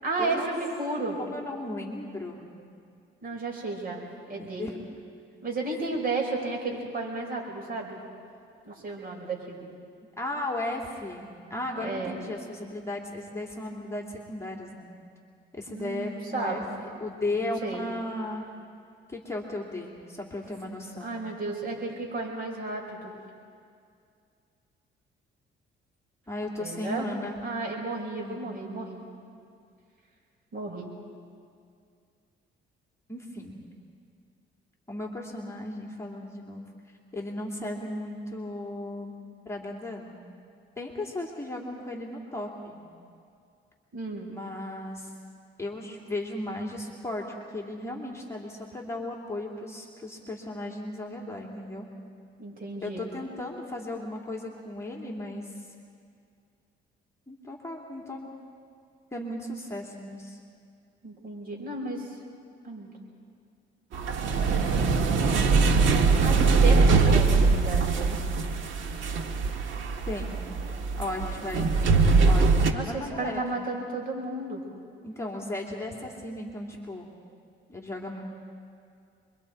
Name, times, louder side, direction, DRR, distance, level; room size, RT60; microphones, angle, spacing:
voice 1, 0.0-1.2 3.2-4.7 5.4-8.0 8.6-9.7 11.8-12.2 15.7-16.8 17.4-17.8 21.0-23.1 26.6-27.1 27.4-29.0 30.5-30.9 43.9-44.3 52.4-53.0 61.0-62.1 62.6-62.9 66.2-68.2 72.7-74.6, right 3 dB, 45° right, -1 dB, 5.5 m, -33 dB
voice 2, 1.2-2.4 4.6-4.8 10.2-14.9 15.5-18.4 19.1-21.1 26.3-27.4 28.2-28.4 33.1-33.6 34.9-36.6 37.1-39.1 39.4-40.2 40.8-42.8 44.3-45.1 45.6-47.3 47.5-51.9 52.8-55.7 57.3-58.3 59.1-60.4 70.1-70.4 71.0-71.7 72.3-73.7 75.0-77.1 77.7-78.3, left 1 dB, 15° left, -1 dB, 2.8 m, -35 dB
sound 1, 63.9-72.7, right 4 dB, 75° right, 1.7 m, -22 dB
26.5 x 23.5 x 4.7 m, 2.3 s
cardioid pair, 90°, 20 cm